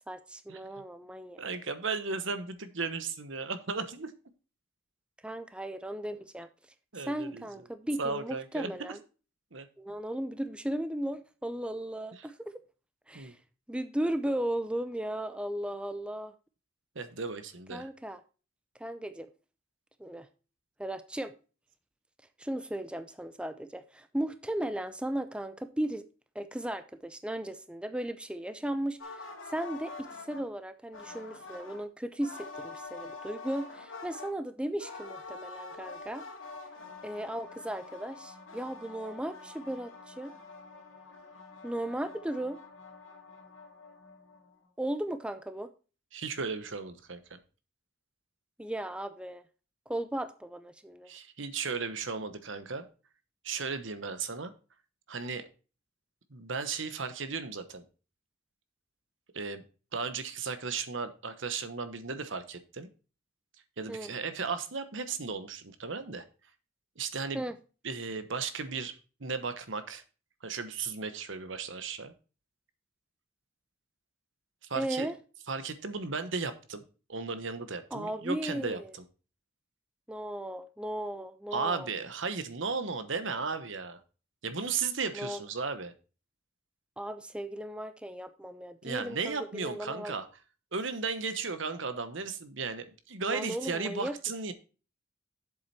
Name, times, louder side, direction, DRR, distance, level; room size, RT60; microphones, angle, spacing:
voice 1, 0.1-1.4 5.2-6.5 7.0-9.0 9.8-12.6 13.1-13.4 13.7-16.3 17.7-18.2 18.8-19.3 20.0-20.3 20.8-21.3 22.4-26.0 26.3-36.2 37.0-40.3 41.6-42.6 44.8-45.7 48.6-49.4 49.9-51.1 63.9-64.1 67.3-67.5 74.7-75.2 77.9-78.9 80.1-81.9 85.1-85.4 87.0-90.1 93.3-94.2, right 1 dB, 5° right, 0.5 m, -36 dB
voice 2, 1.4-4.1 6.9-7.4 8.0-8.7 9.5-9.7 13.1-13.3 16.9-17.9 46.1-47.4 51.1-52.8 53.4-54.5 55.1-55.4 56.3-57.8 59.3-59.6 59.9-62.9 63.8-66.2 67.0-67.4 67.8-70.0 70.4-72.1 74.7-75.1 75.5-76.8 77.1-78.8 81.5-84.0 84.4-85.9 88.8-90.3 90.7-94.5, right 4 dB, 70° right, 1.1 m, -35 dB
sound 1, 29.0-30.5 30.9-31.8 32.2-34.3 34.8-44.5, left 3 dB, 75° left, 2.1 m, -46 dB
7.8 x 7.6 x 4.2 m
head